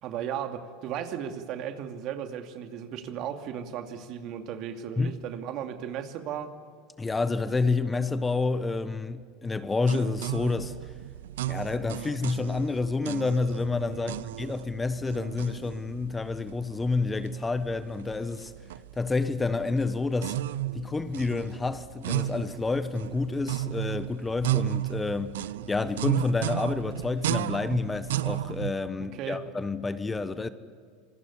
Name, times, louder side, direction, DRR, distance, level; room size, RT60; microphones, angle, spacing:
voice 1, 0.0-6.5 13.9-14.1 29.1-29.4, right 9 dB, 55° right, 2.6 m, -35 dB
voice 2, 7.0-10.8 11.5-18.5 19.0-20.4 20.7-25.4 25.7-30.5, left 3 dB, 15° left, 1.2 m, -29 dB
sound 1, 9.8-28.7, right 14 dB, 80° right, 0.6 m, -34 dB
26.5 x 21.0 x 8.4 m
hypercardioid pair, 90°, 0 cm